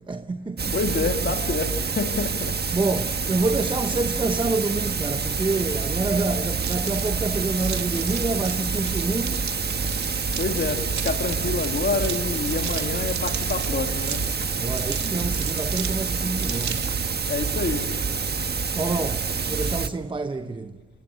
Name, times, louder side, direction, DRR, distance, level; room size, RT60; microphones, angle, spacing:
voice 1, 0.0-0.9 2.2-9.6 14.6-17.0 18.5-20.8, right 3 dB, 15° right, 0.9 m, -28 dB
sound 1, 0.6-19.9, right 5 dB, 35° right, 1.3 m, -27 dB
voice 2, 0.7-2.6 10.3-14.6 17.3-17.9, left 4 dB, 35° left, 2.7 m, -28 dB
sound 2, 6.6-17.1, right 9 dB, 65° right, 2.5 m, -37 dB
29.0 x 25.5 x 7.9 m
cardioid pair, 90°, 30 cm